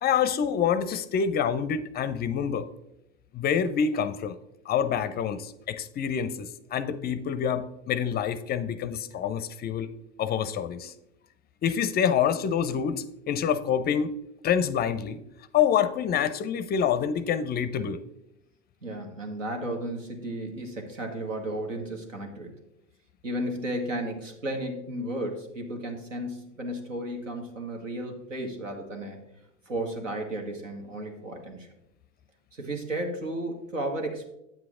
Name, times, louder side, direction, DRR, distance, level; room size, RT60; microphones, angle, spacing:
voice 1, 0.0-2.7 3.3-4.4 4.7-9.9 10.2-10.9 11.6-14.2 14.4-15.2 15.5-18.0, left 8 dB, 25° left, 13 dB, 0.5 m, -27 dB
voice 2, 18.8-22.5 23.2-29.2 29.7-31.7 32.5-34.3, right 1 dB, 85° right, 3 dB, 1.6 m, -34 dB
9.1 x 7.6 x 3.7 m, 0.86 s
hypercardioid pair, 85°, 37 cm